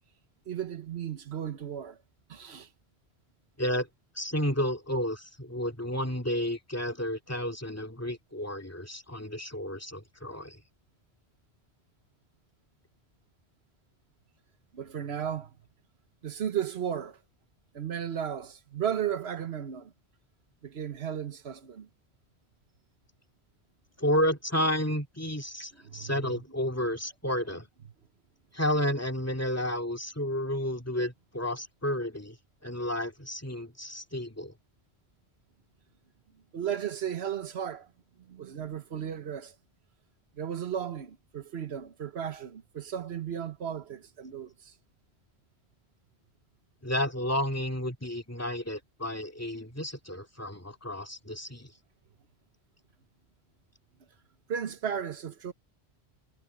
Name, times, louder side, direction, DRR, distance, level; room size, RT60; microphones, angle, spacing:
voice 1, 0.5-2.0 2.3-2.7 14.7-15.5 16.2-17.2 17.7-19.9 20.6-21.9 25.8-26.1 36.5-37.9 38.3-39.5 40.4-44.7 54.5-55.5, right 9 dB, 75° right, 1.3 m, -34 dB
voice 2, 4.2-10.6 24.0-27.7 28.5-32.4 32.6-34.5 46.8-51.7, equal, 15° left, 2.5 m, -31 dB
omnidirectional pair, 1.1 m